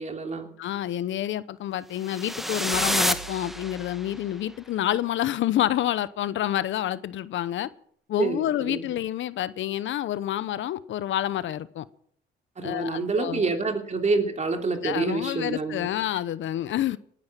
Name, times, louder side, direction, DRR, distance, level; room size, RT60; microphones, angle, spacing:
voice 1, 0.0-0.5 8.2-8.9 12.6-15.9, right 3 dB, 35° right, 4 dB, 3.1 m, -27 dB
voice 2, 0.6-7.7 8.1-11.9 12.6-13.5 14.8-17.0, left 12 dB, 75° left, 17 dB, 0.8 m, -28 dB
sound 1, 2.0-4.2, equal, ahead, 1.3 m, -28 dB
sound 2, 2.7-4.8, right 6 dB, 80° right, 3.2 m, -47 dB
18.0 x 10.5 x 7.4 m, 0.64 s
cardioid pair, 90°, 20 cm